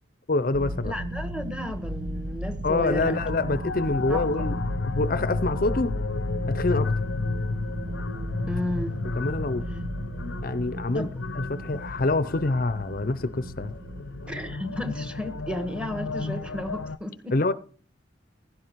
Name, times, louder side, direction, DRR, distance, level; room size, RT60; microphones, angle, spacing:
voice 1, 0.3-0.9 2.6-5.9 6.5-6.9 9.2-9.7 10.4-11.1 11.3-13.7 17.3-17.5, left 2 dB, 50° left, 0.6 m, -26 dB
sound 1, 0.5-16.9, equal, 65° right, 1.2 m, -35 dB
voice 2, 0.8-3.2 4.1-4.3 8.5-8.9 10.9-11.1 14.3-17.3, left 1 dB, 5° right, 1.4 m, -33 dB
sound 2, 2.9-17.0, left 4 dB, 85° left, 0.7 m, -33 dB
16.0 x 12.0 x 4.6 m
head